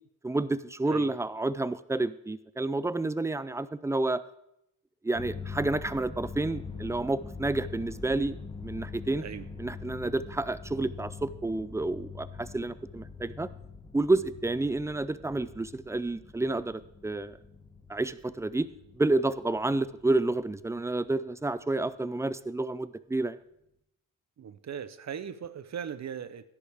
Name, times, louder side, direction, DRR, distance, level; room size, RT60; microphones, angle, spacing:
voice 1, 0.2-4.2 5.0-8.4 8.6-9.2 9.6-13.5 13.9-17.4 17.9-18.7 19.0-23.4, right 2 dB, 10° right, 16 dB, 0.4 m, -30 dB
sound 1, 5.1-21.2, left 5 dB, 15° left, 1.1 m, -44 dB
voice 2, 24.4-26.5, right 8 dB, 45° right, 14 dB, 0.7 m, -39 dB
13.0 x 10.5 x 3.5 m, 0.79 s
cardioid pair, 95°, 37 cm